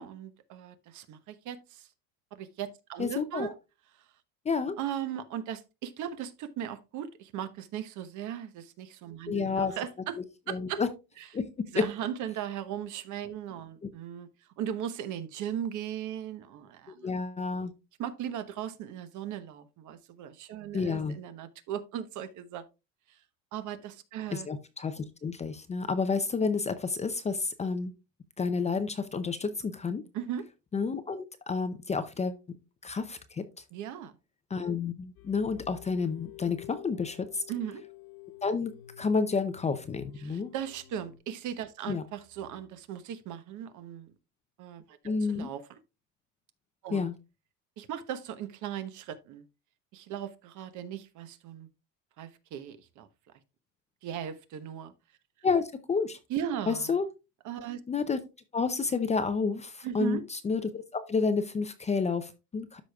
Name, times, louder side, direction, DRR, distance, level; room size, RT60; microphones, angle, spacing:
voice 1, 0.0-1.9 2.3-3.6 4.8-10.2 10.5-10.8 11.2-11.3 11.7-14.3 14.6-17.1 18.0-22.6 23.5-24.5 30.1-30.5 33.7-34.1 37.5-37.8 40.2-44.1 44.6-45.0 45.3-45.6 46.8-47.1 47.8-49.4 49.9-51.7 52.2-53.1 54.0-54.9 56.3-57.0 57.4-57.8 59.8-60.2, right 10 dB, 50° right, 1.1 m, -37 dB
voice 2, 3.0-3.5 4.4-4.8 9.3-9.7 10.5-10.9 11.3-11.5 11.7-11.9 13.8-13.9 16.9-17.7 20.7-21.2 24.3-27.9 28.4-30.0 30.7-32.4 32.8-33.6 34.5-37.4 38.4-40.5 41.9-42.0 45.0-45.5 46.9-47.1 55.4-56.2 56.7-57.1 57.9-58.2 58.5-62.8, left 4 dB, 20° left, 0.5 m, -30 dB
sound 1, 35.2-41.2, left 14 dB, 65° left, 1.1 m, -50 dB
12.5 x 5.0 x 2.3 m
supercardioid pair, 120°, 37 cm